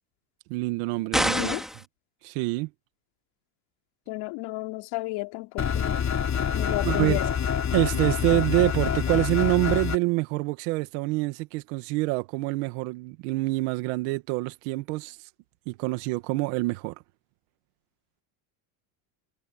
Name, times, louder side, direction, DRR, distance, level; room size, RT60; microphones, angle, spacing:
voice 1, 0.5-1.5 2.2-2.7 6.8-7.2 7.7-15.2 15.7-16.9, right 22 dB, 80° right, 1.8 m, -26 dB
sound 1, 1.1-1.9, equal, ahead, 3.7 m, -26 dB
voice 2, 1.3-1.6 4.1-6.1 6.5-7.2 7.8-7.9, left 23 dB, 75° left, 4.5 m, -32 dB
sound 2, 5.6-10.0, left 8 dB, 35° left, 3.2 m, -26 dB
supercardioid pair, 115°, 48 cm